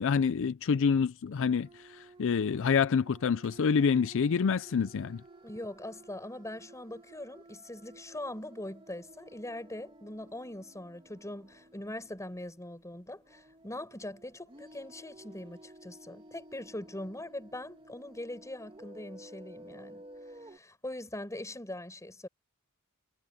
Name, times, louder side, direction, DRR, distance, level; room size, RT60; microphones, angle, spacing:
voice 1, 0.0-5.2, left 6 dB, 60° left, 0.4 m, -27 dB
sound 1, 1.3-20.6, right 1 dB, 25° right, 2.2 m, -54 dB
voice 2, 5.4-20.1 20.4-22.3, left 1 dB, 15° left, 6.0 m, -42 dB
head